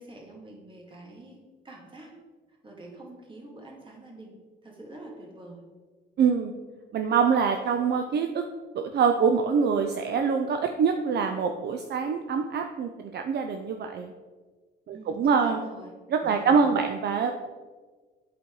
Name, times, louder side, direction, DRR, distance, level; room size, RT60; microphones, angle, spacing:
voice 1, 0.0-1.4 1.6-2.1 2.6-4.4 4.6-5.6 6.3-6.7 14.9-15.9 16.2-16.8, right 2 dB, 25° right, -1 dB, 2.1 m, -46 dB
voice 2, 6.2-6.5 6.9-8.4 8.7-14.1 14.9-15.6 16.1-17.3, right 6 dB, 55° right, 5 dB, 0.5 m, -25 dB
8.3 x 4.1 x 4.7 m, 1.4 s
cardioid pair, 90°, 20 cm